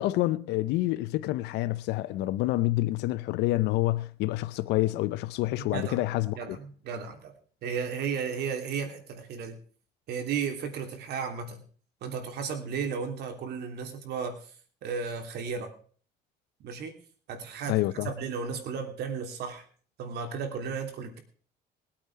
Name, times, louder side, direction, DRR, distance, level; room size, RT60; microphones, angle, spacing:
voice 1, 0.0-6.6 17.7-18.1, left 17 dB, 90° left, 0.7 m, -28 dB
voice 2, 5.6-6.0 6.4-7.3 7.6-9.6 10.1-11.6 12.0-14.5 14.8-15.7 16.6-16.9 17.3-17.8 18.0-19.6 20.0-21.2, right 6 dB, 75° right, 3.1 m, -34 dB
20.0 x 8.8 x 4.8 m
cardioid pair, 110°, 17 cm